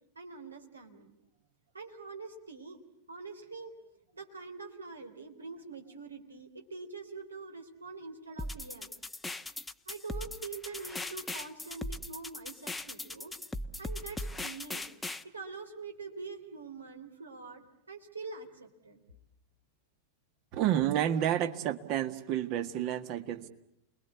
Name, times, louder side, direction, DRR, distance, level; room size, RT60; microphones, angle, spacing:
voice 1, 0.2-1.1 1.7-2.8 3.1-3.7 4.1-8.9 9.9-13.3 13.8-14.9 15.2-19.0, right 4 dB, 75° right, 4 dB, 3.5 m, -45 dB
sound 1, 8.4-15.2, left 2 dB, 10° left, 1.0 m, -39 dB
voice 2, 20.5-23.5, right 11 dB, 40° right, 8 dB, 1.8 m, -30 dB
29.5 x 22.0 x 8.4 m, 0.83 s
figure-of-eight pair, 90°, 0 cm